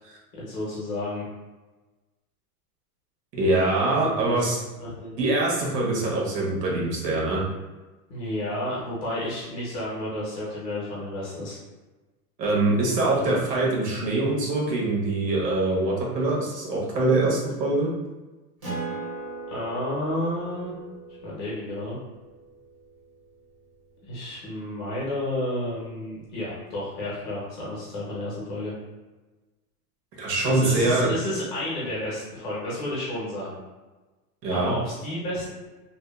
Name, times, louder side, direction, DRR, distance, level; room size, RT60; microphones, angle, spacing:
voice 1, 0.3-1.2 4.0-5.1 8.1-11.6 13.1-13.4 19.5-20.7 21.2-22.0 24.1-28.7 30.5-33.6 34.5-35.5, left 1 dB, 30° left, -7 dB, 0.6 m, -31 dB
voice 2, 3.3-4.6 5.2-7.4 12.4-17.9 30.2-31.1 34.4-34.7, right 2 dB, 90° right, -3 dB, 1.1 m, -24 dB
Acoustic guitar, 18.6-23.6, right 3 dB, 25° right, 0.4 m, -39 dB
2.7 x 2.2 x 2.2 m, 1.2 s
supercardioid pair, 170°, 47 cm